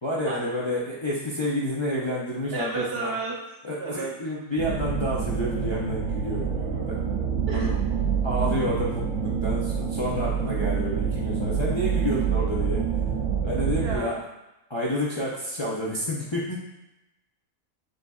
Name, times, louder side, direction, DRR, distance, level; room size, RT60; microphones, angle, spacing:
voice 1, 0.0-3.1 3.6-7.0 7.5-7.8 8.2-12.8 13.4-14.2 14.7-16.6, left 1 dB, 40° left, -6 dB, 0.4 m, -29 dB
voice 2, 2.5-3.4 3.8-4.1 7.5-7.7 13.8-14.2, right 4 dB, 50° right, -2 dB, 0.9 m, -32 dB
sound 1, 4.6-14.0, right 7 dB, 85° right, 1.0 m, -27 dB
sound 2, 5.4-12.6, right 1 dB, 60° left, 1.6 m, -43 dB
6.3 x 2.7 x 2.3 m, 0.93 s
omnidirectional pair, 1.4 m